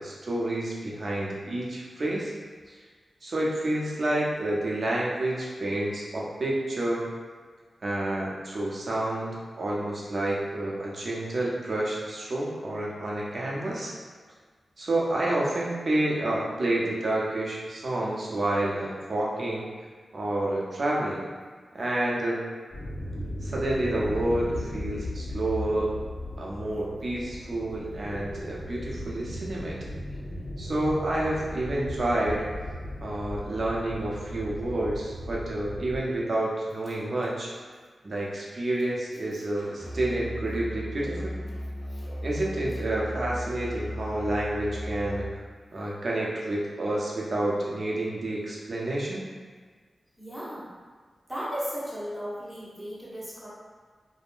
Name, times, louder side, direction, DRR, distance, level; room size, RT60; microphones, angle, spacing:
voice 1, 0.0-2.3 2.7-2.8 3.2-7.1 7.8-13.9 14.8-19.7 20.1-21.2 21.7-22.4 23.4-25.9 26.4-29.8 30.6-32.5 33.0-37.5 38.0-41.3 42.2-45.3 45.7-49.2, right 1 dB, 55° right, -4 dB, 0.6 m, -29 dB
sound 1, 22.7-36.0, left 1 dB, 65° left, 0.8 m, -37 dB
Musical instrument, 39.8-45.4, left 1 dB, 20° left, 0.5 m, -36 dB
voice 2, 50.2-50.7 51.3-53.5, equal, 5° right, -9 dB, 1.0 m, -35 dB
3.5 x 2.0 x 2.5 m, 1.5 s
wide cardioid pair, 75°, 0 cm